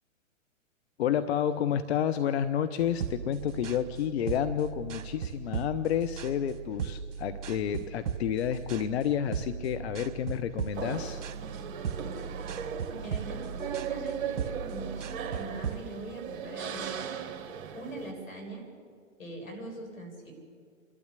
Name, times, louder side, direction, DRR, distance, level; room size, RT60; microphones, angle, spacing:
voice 1, 1.0-11.2, left 9 dB, 55° left, 11 dB, 0.9 m, -30 dB
sound 1, 2.8-15.8, right 7 dB, 65° right, 1.4 m, -38 dB
sound 2, 10.7-18.1, right 8 dB, 45° right, 2.1 m, -38 dB
voice 2, 13.0-17.4 17.7-18.7 19.2-20.3, right 1 dB, 80° left, 2 dB, 7.1 m, -42 dB
29.0 x 12.5 x 8.3 m, 2.2 s
hypercardioid pair, 125°, 40 cm